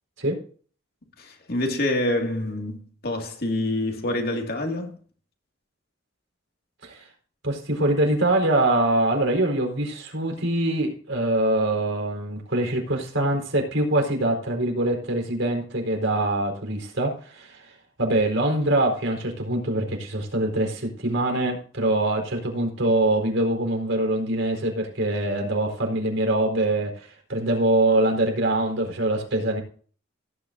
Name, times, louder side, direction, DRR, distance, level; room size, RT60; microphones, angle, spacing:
voice 1, 1.2-5.0, left 1 dB, 50° left, 2.2 m, -27 dB
voice 2, 7.4-29.6, right 1 dB, 75° right, 4.4 m, -24 dB
17.5 x 9.5 x 2.6 m
head